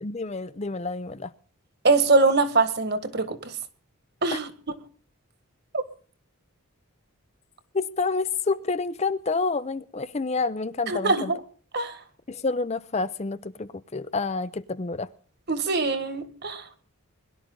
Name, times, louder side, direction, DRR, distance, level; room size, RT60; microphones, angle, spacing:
voice 1, 0.0-1.3 4.3-4.4 7.7-11.3 12.3-15.1, left 3 dB, 30° left, 0.5 m, -28 dB
voice 2, 1.8-3.5 4.2-4.5 5.7-5.8 10.9-11.4 11.7-12.0 15.5-16.6, right 3 dB, 50° right, 1.7 m, -23 dB
22.0 x 12.0 x 3.8 m
head